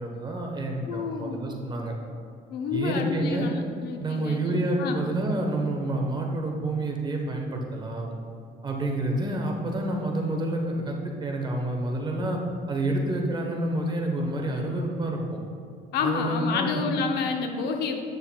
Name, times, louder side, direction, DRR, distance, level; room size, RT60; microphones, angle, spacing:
voice 1, 0.0-1.9 2.7-3.5 4.0-8.1 8.6-10.9 11.2-12.4 12.7-15.4 16.0-16.8, right 1 dB, 25° right, 1 dB, 1.1 m, -28 dB
voice 2, 0.9-1.6 2.5-5.0 15.9-18.1, left 5 dB, 70° left, 4 dB, 0.7 m, -29 dB
9.3 x 6.5 x 2.3 m, 2.4 s
cardioid pair, 110°, 17 cm